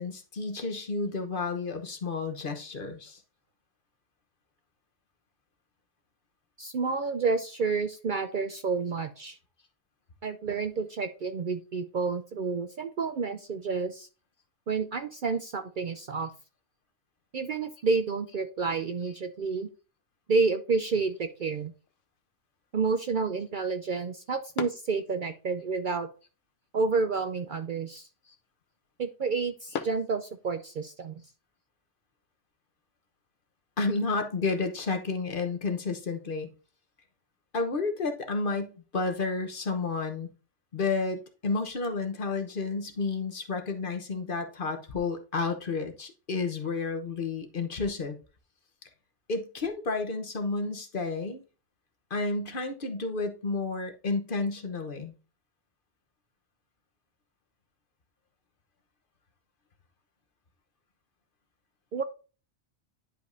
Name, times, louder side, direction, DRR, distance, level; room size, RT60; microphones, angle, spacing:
voice 1, 0.0-3.2 33.8-36.5 37.5-40.3 40.7-48.2 49.3-51.4 52.1-55.1, left 3 dB, 50° left, 1.1 m, -31 dB
voice 2, 6.6-9.4 10.2-14.1 14.7-16.3 17.3-19.7 20.3-21.7 22.7-26.1 26.7-28.1 29.0-31.2 61.9-62.0, right 4 dB, 55° right, 0.6 m, -29 dB
sound 1, 20.8-30.9, left 7 dB, 85° left, 1.0 m, -46 dB
10.5 x 5.2 x 2.6 m
omnidirectional pair, 1.2 m